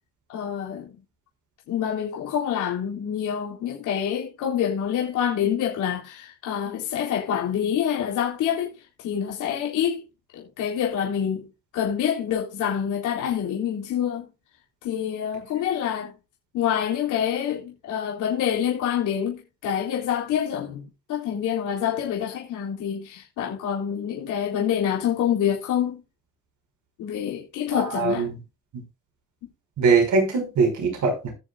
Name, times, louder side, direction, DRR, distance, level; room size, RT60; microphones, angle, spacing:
voice 1, 0.3-0.9 1.7-8.7 9.0-10.0 10.3-11.5 11.7-14.3 14.8-16.1 16.5-20.8 21.1-26.0 27.0-28.3, left 9 dB, 90° left, 3.8 m, -26 dB
voice 2, 27.7-28.3 29.8-31.3, right 4 dB, 70° right, 6.1 m, -21 dB
19.5 x 7.3 x 2.5 m
cardioid pair, 90°, 30 cm